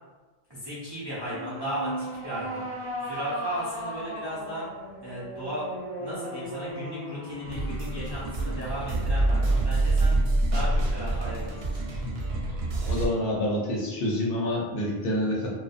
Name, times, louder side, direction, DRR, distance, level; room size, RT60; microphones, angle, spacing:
voice 1, 0.5-2.6 3.0-4.6 5.0-10.2 10.5-11.8, right 1 dB, 35° right, -9 dB, 0.4 m, -36 dB
sound 1, 1.3-10.7, equal, 35° left, 1.0 m, -37 dB
sound 2, 7.5-13.1, right 2 dB, 75° right, 0.8 m, -26 dB
voice 2, 12.8-15.5, left 1 dB, 70° left, -3 dB, 0.8 m, -27 dB
2.5 x 2.1 x 2.4 m, 1.2 s
omnidirectional pair, 1.0 m